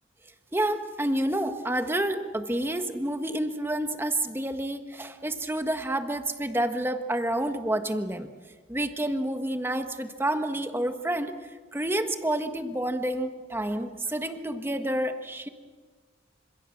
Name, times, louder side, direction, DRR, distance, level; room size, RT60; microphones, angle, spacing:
voice 1, 0.5-8.3 8.7-11.3 11.7-15.5, right 1 dB, 10° right, 7 dB, 1.5 m, -29 dB
28.5 x 27.0 x 7.3 m, 1.4 s
head